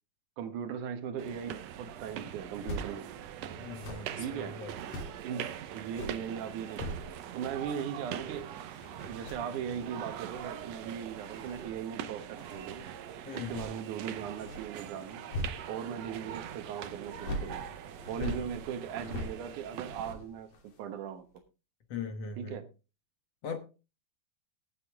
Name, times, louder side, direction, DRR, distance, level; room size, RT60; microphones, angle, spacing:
voice 1, 0.4-3.1 4.2-4.6 5.2-7.0 7.3-8.6 8.9-12.9 13.3-15.2 15.7-17.6 18.1-21.3 22.4-22.7, right 8 dB, 65° right, 9 dB, 2.4 m, -39 dB
sound 1, 1.2-20.1, right 10 dB, 80° right, 1.5 m, -43 dB
sound 2, 2.5-2.9 3.6-5.2 5.7-7.4 7.7-16.1 17.1-20.9 21.3-21.4, equal, 75° left, 4.7 m, -43 dB
voice 2, 3.6-4.8 13.3-13.8 18.2-18.5 21.9-22.6 23.4-23.6, left 5 dB, 60° left, 6 dB, 1.8 m, -40 dB
17.5 x 8.4 x 3.6 m, 0.32 s
omnidirectional pair, 4.3 m